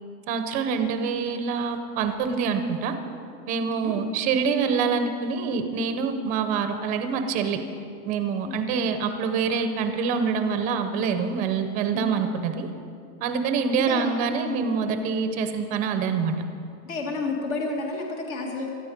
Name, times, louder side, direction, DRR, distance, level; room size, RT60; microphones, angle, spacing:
voice 1, 0.3-2.9 3.5-7.6 8.1-12.7 13.2-16.4, right 5 dB, 15° right, 8 dB, 0.6 m, -26 dB
voice 2, 3.8-4.1 8.4-8.9 11.9-12.2 13.9-14.1 16.9-18.7, left 3 dB, 60° left, 0 dB, 2.0 m, -31 dB
19.0 x 13.0 x 5.2 m, 2.5 s
supercardioid pair, 165°, 47 cm